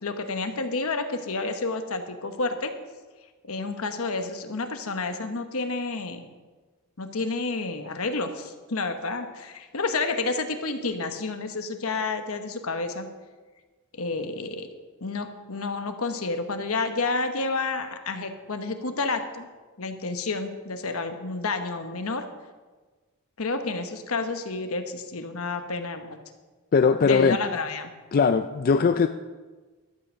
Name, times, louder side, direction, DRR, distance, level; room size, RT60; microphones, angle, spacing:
voice 1, 0.0-2.7 3.4-6.3 7.0-13.1 13.9-14.7 15.0-19.5 19.8-22.2 23.4-26.2 27.0-27.9, left 3 dB, 70° left, 7 dB, 1.2 m, -30 dB
voice 2, 26.7-27.4 28.1-29.1, left 5 dB, 45° left, 9 dB, 0.4 m, -20 dB
12.5 x 7.9 x 6.3 m, 1.3 s
head